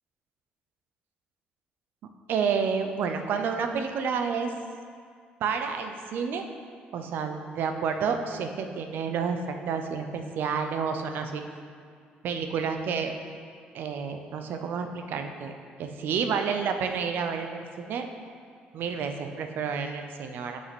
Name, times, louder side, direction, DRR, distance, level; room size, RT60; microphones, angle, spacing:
voice 1, 2.3-4.5 5.4-6.4 6.9-11.4 12.2-13.1 13.7-15.5 15.8-18.0 18.7-20.6, right 6 dB, 70° right, 6 dB, 0.6 m, -30 dB
6.3 x 5.4 x 6.0 m, 2.2 s
cardioid pair, 95°, 4 cm